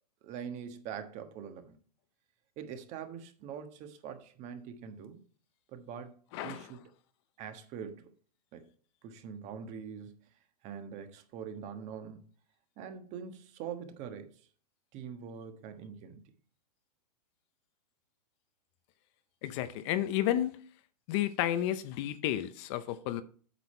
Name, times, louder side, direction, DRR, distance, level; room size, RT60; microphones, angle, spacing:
voice 1, 0.2-1.8 2.6-5.2 5.7-6.8 7.4-8.1 8.5-8.7 9.0-10.3 10.6-12.2 12.8-14.4 14.9-16.2, right 7 dB, 35° right, 1.3 m, -43 dB
voice 2, 6.3-6.7 19.4-20.6 21.1-23.2, left 12 dB, 40° left, 0.7 m, -32 dB
8.2 x 6.4 x 4.4 m
hypercardioid pair, 140°, 21 cm